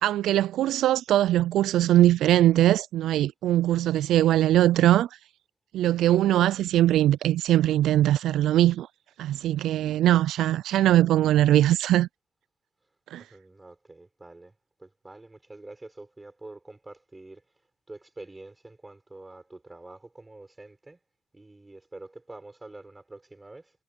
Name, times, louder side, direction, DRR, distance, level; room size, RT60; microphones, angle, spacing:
voice 1, 0.0-5.1 5.7-8.9 9.2-12.1 13.1-13.2, right 13 dB, 75° right, 0.3 m, -21 dB
voice 2, 13.2-14.5 14.8-17.4 17.9-21.0 21.3-23.7, right 2 dB, 15° right, 6.6 m, -46 dB
cardioid pair, 120°, 0 cm